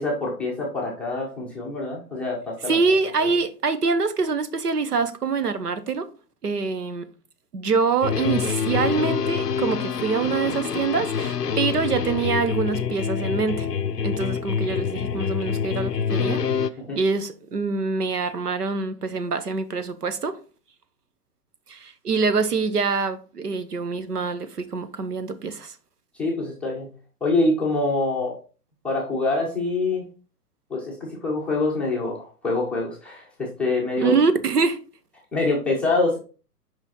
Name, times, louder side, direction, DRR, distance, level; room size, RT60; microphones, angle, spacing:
voice 1, 0.0-2.8 3.2-3.3 16.8-17.0 26.2-26.9 27.2-28.4 28.8-30.1 30.7-34.1 35.3-36.2, left 2 dB, 5° left, 0.6 m, -25 dB
voice 2, 2.7-6.1 6.4-7.1 7.5-13.7 14.0-16.4 16.9-20.4 21.7-25.7 34.0-34.8, right 4 dB, 75° right, 1.1 m, -25 dB
sound 1, 8.0-16.7, left 7 dB, 90° left, 0.6 m, -26 dB
6.1 x 5.1 x 4.1 m
figure-of-eight pair, 125°, 47 cm